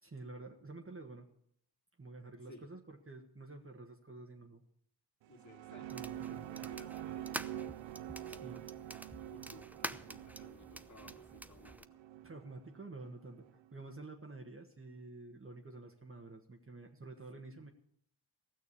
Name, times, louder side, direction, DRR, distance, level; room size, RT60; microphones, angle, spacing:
voice 1, 0.0-1.3 2.0-4.6 5.9-6.5 8.3-8.7 12.2-13.5 13.7-17.7, right 2 dB, 25° right, 2 dB, 1.6 m, -50 dB
sound 1, 5.2-13.9, right 12 dB, 70° right, 0.7 m, -47 dB
voice 2, 5.3-7.4 9.3-12.0, left 1 dB, 35° left, 3 dB, 2.6 m, -58 dB
sound 2, 5.9-11.9, right 1 dB, 5° right, 0.6 m, -48 dB
15.5 x 6.5 x 8.4 m, 0.70 s
supercardioid pair, 55°, 47 cm